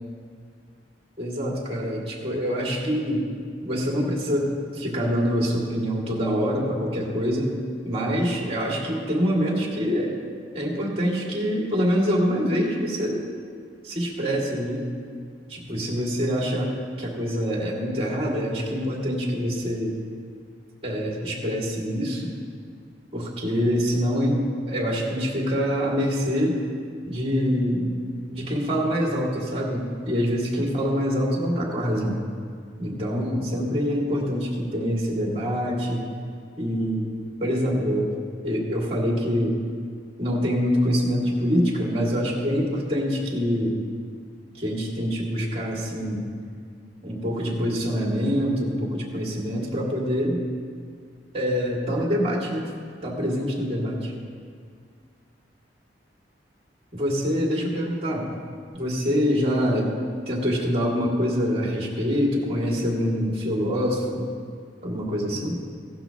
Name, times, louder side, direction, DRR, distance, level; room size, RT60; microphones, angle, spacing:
voice 1, 1.2-3.2 3.6-7.5 7.8-10.1 10.5-13.3 13.8-14.9 15.5-19.9 20.8-22.3 23.1-26.6 27.1-27.9 28.3-32.2 32.8-36.0 36.6-37.1 37.4-38.1 38.4-39.6 40.2-43.8 44.6-46.3 47.0-50.4 51.3-52.7 53.0-54.1 56.9-58.3 58.7-59.9 60.3-64.3 64.8-65.6, equal, 35° right, -2 dB, 2.4 m, -25 dB
16.0 x 12.0 x 3.0 m, 2.1 s
head